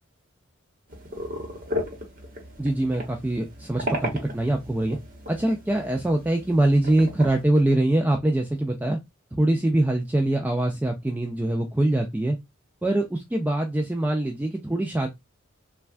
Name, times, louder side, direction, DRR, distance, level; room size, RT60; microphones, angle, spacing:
sound 1, 0.9-7.4, equal, 45° right, 1.0 m, -35 dB
voice 1, 2.6-5.0 5.3-9.0 9.4-12.4 12.8-15.1, right 1 dB, 10° right, 2 dB, 0.3 m, -23 dB
3.3 x 2.2 x 2.4 m, 0.18 s
head